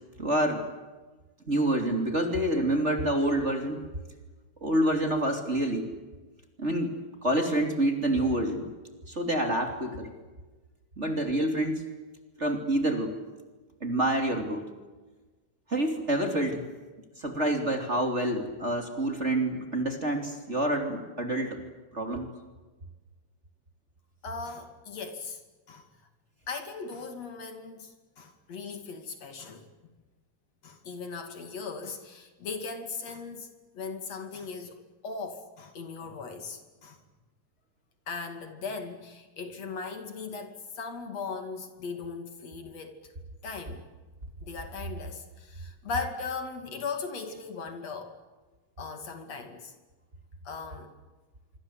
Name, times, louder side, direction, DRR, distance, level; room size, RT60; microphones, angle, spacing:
voice 1, 0.2-0.7 1.5-3.9 4.6-5.9 6.6-8.7 9.1-10.1 11.0-11.9 12.4-13.2 13.8-14.7 15.7-16.6 17.2-21.6 21.9-22.3, right 1 dB, 20° right, 4 dB, 3.2 m, -27 dB
voice 2, 24.2-25.4 25.7-25.9 26.5-29.7 30.6-33.5 33.7-34.8 35.0-37.0 38.1-43.1 43.4-43.8 44.4-48.2 48.8-49.7 50.5-50.9, left 4 dB, 60° left, 7 dB, 3.7 m, -38 dB
26.0 x 25.0 x 8.2 m, 1.2 s
omnidirectional pair, 3.5 m